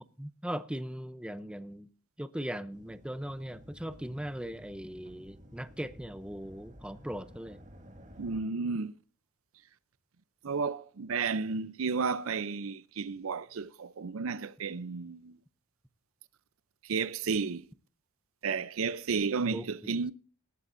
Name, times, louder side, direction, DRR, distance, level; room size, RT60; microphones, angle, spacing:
voice 1, 0.2-1.9 2.2-7.6 19.4-20.1, equal, 5° right, 0.6 m, -39 dB
sound 1, 2.7-8.4, equal, 35° right, 2.0 m, -53 dB
voice 2, 8.2-8.9 10.4-15.4 16.8-17.6 18.4-20.1, right 5 dB, 70° right, 0.6 m, -32 dB
18.5 x 12.5 x 2.6 m
head